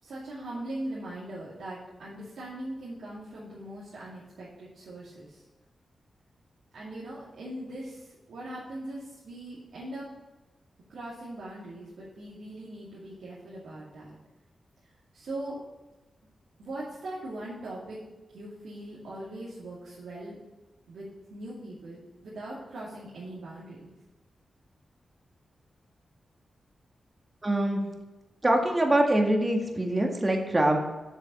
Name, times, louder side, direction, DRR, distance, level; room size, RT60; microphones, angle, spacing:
voice 1, 0.0-5.4 6.7-10.1 10.9-14.2 15.1-15.6 16.6-18.0 18.3-20.4 20.9-23.9, right 1 dB, 85° right, -9 dB, 2.5 m, -40 dB
voice 2, 27.4-27.8 28.4-30.8, right 1 dB, 25° right, 2 dB, 1.8 m, -24 dB
7.3 x 7.2 x 5.5 m, 1.1 s
cardioid pair, 70°, 0 cm